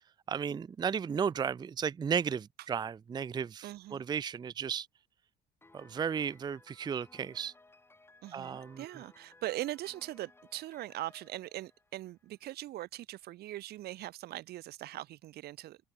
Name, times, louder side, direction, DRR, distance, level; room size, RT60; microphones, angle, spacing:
voice 1, 0.3-4.9 5.7-7.5 8.3-8.8, right 7 dB, 25° right, 0.5 m, -34 dB
voice 2, 3.6-4.0 8.2-15.8, right 15 dB, 70° right, 1.3 m, -41 dB
Piano, 5.6-12.4, left 2 dB, 15° left, 4.0 m, -61 dB
cardioid pair, 110°, 17 cm